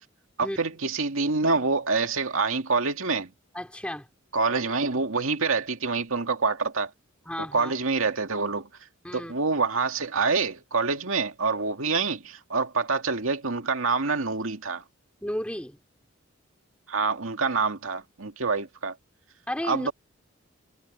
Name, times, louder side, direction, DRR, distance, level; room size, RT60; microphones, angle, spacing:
voice 1, 0.4-3.3 4.3-6.9 7.5-8.7 9.1-14.8 16.9-18.9 19.6-19.9, right 4 dB, 80° right, 2.1 m, -26 dB
voice 2, 3.5-4.1 7.2-7.7 9.0-9.3 15.2-15.8 19.5-19.9, equal, 5° left, 2.4 m, -33 dB
head